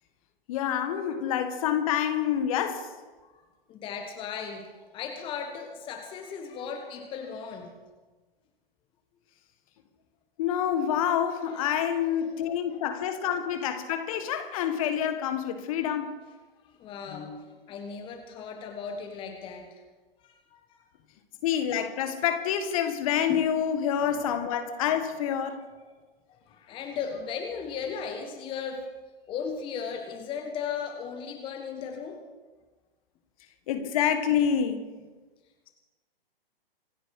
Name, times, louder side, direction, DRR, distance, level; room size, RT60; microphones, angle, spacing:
voice 1, 0.5-2.9 10.4-16.2 21.4-25.7 33.7-34.8, left 9 dB, 35° left, 1.6 m, -27 dB
voice 2, 3.7-7.7 11.4-12.3 12.6-12.8 16.6-19.8 20.2-20.8 23.3-23.5 26.3-28.9 29.3-32.2, left 6 dB, 15° left, 1.4 m, -37 dB
26.5 x 10.0 x 4.9 m
figure-of-eight pair, 125°, 29 cm